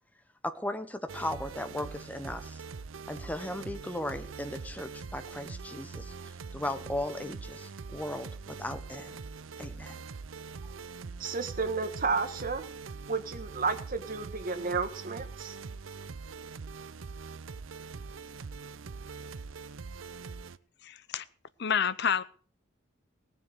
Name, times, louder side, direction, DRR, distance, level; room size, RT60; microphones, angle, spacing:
voice 1, 0.4-2.6 3.1-9.2 9.6-10.0, left 1 dB, 10° left, 1.0 m, -37 dB
sound 1, 1.1-20.6, right 4 dB, 85° right, 0.6 m, -43 dB
voice 2, 11.2-12.6 13.1-15.6, right 4 dB, 45° right, 1.4 m, -32 dB
voice 3, 20.8-21.2 21.6-22.2, left 7 dB, 55° left, 0.7 m, -28 dB
17.5 x 7.5 x 6.5 m
head